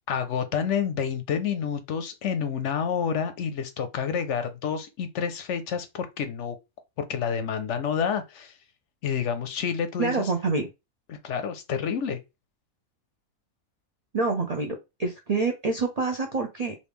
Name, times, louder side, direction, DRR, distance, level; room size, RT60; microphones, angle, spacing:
voice 1, 0.1-6.6 7.0-8.6 9.0-10.3 11.1-12.2, left 7 dB, 65° left, 0.8 m, -29 dB
voice 2, 10.0-10.7 14.1-16.7, right 3 dB, 65° right, 0.3 m, -27 dB
3.2 x 2.5 x 3.4 m
omnidirectional pair, 1.5 m